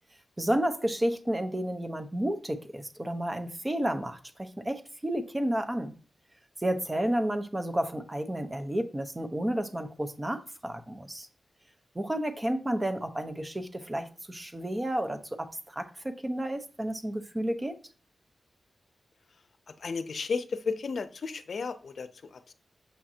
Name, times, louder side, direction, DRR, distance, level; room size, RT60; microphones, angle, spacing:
voice 1, 0.4-6.0 6.6-11.3 11.9-17.8, right 1 dB, 20° right, 0.9 m, -31 dB
voice 2, 19.8-22.5, left 4 dB, 70° left, 0.6 m, -34 dB
7.4 x 5.7 x 2.8 m
cardioid pair, 65°, 0 cm